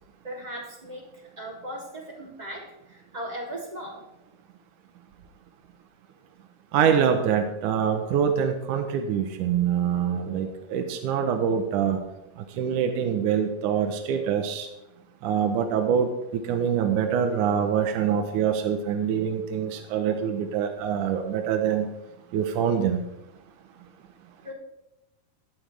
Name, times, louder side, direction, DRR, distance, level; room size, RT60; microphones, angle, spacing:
voice 1, 0.2-4.0 24.4-24.5, equal, 10° right, -3 dB, 3.0 m, -38 dB
voice 2, 6.7-12.0 12.4-14.7 15.2-21.9 22.3-23.0, right 8 dB, 70° right, 5 dB, 2.3 m, -25 dB
16.5 x 11.5 x 3.5 m, 0.90 s
omnidirectional pair, 4.3 m